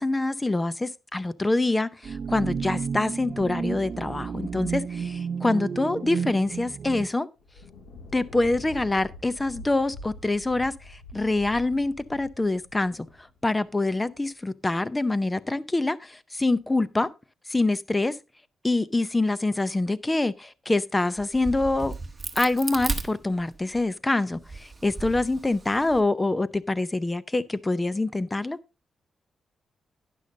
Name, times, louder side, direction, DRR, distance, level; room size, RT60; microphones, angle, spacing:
voice 1, 0.0-7.3 8.1-13.1 13.4-17.1 17.5-18.2 18.6-21.9 22.3-28.6, left 2 dB, 15° left, 0.5 m, -25 dB
sound 1, 2.0-7.1, right 6 dB, 45° right, 0.6 m, -32 dB
Thunder, 7.4-14.0, left 2 dB, 70° left, 2.2 m, -45 dB
Crack, 21.2-23.8 24.3-26.0, right 3 dB, 15° right, 1.2 m, -35 dB
12.0 x 10.0 x 2.7 m
wide cardioid pair, 155°, 0 cm